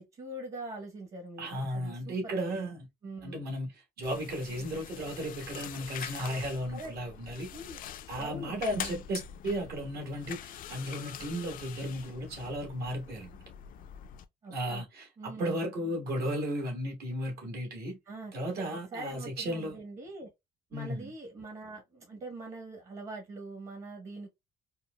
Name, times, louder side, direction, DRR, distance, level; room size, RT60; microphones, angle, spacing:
voice 1, 0.0-2.7 3.0-3.4 6.7-6.9 7.5-7.8 8.1-9.0 14.4-14.8 15.2-15.6 18.1-18.3 18.9-20.3 20.7-24.3, right 2 dB, 45° right, 1.1 m, -43 dB
voice 2, 1.4-2.9 3.2-3.7 4.0-7.5 8.1-13.4 14.5-18.0 18.3-19.8 20.7-21.1, equal, 70° right, 1.4 m, -35 dB
sound 1, 4.0-14.2, left 9 dB, 55° left, 0.4 m, -44 dB
4.3 x 2.1 x 2.2 m
cardioid pair, 110°, 17 cm